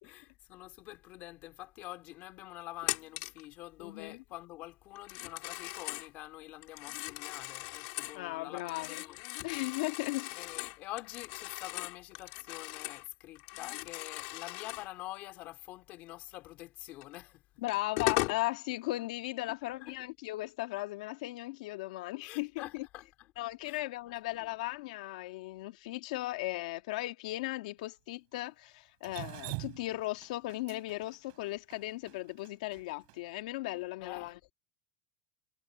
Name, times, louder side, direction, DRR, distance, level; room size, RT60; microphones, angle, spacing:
voice 1, 0.0-9.5 10.3-17.4 19.8-20.0 22.2-23.3 23.6-24.1 24.4-24.5 34.0-34.3, left 17 dB, 45° left, 3.1 m, -47 dB
Telephone, 2.8-3.4 5.0-6.1 6.6-8.2 8.6-13.1 13.3-14.9 17.0-17.1 17.7-18.4, left 27 dB, 60° left, 3.9 m, -38 dB
voice 2, 3.8-4.2 8.1-10.3 17.6-22.9 23.4-34.5, left 18 dB, 85° left, 1.8 m, -37 dB
Drip, 29.0-33.2, right 36 dB, 60° right, 4.4 m, -44 dB
supercardioid pair, 160°, 4 cm